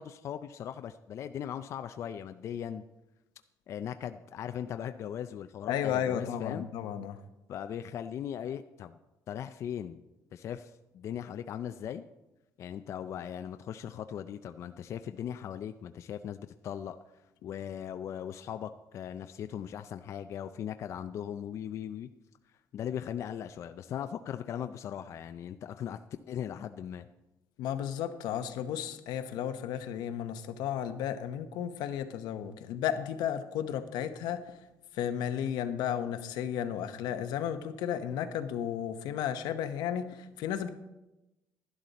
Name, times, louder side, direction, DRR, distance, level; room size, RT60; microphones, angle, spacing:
voice 1, 0.0-2.8 3.7-6.7 7.5-9.0 9.3-10.0 10.3-12.0 12.6-17.0 17.4-22.1 22.7-26.0 26.3-27.1, left 9 dB, 45° left, 9 dB, 0.4 m, -39 dB
voice 2, 5.7-7.2 27.6-34.6 34.9-40.7, left 9 dB, 85° left, 9 dB, 0.9 m, -33 dB
11.5 x 11.5 x 4.1 m, 0.99 s
cardioid pair, 165°, 7 cm